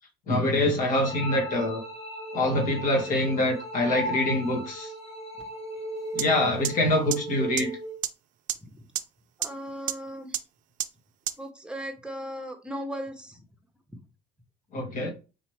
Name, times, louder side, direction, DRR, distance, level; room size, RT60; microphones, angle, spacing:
voice 1, 0.3-1.8 2.3-4.9 6.1-7.8 14.7-15.1, left 1 dB, 55° left, 1.8 m, -25 dB
sound 1, 1.0-8.0, right 1 dB, 40° left, 1.2 m, -36 dB
sound 2, 6.2-6.3 6.6-6.7 7.1-7.2 7.6-7.7 8.0-8.1 8.5-8.6 9.0-9.1 9.4-9.5 9.9-10.0 10.3-10.4 10.8-10.9 11.3-11.4, right 13 dB, 50° right, 0.4 m, -27 dB
voice 2, 9.4-10.4 11.4-13.4 13.9-14.0, equal, 5° right, 1.1 m, -37 dB
4.1 x 3.1 x 3.1 m
supercardioid pair, 75°, 16 cm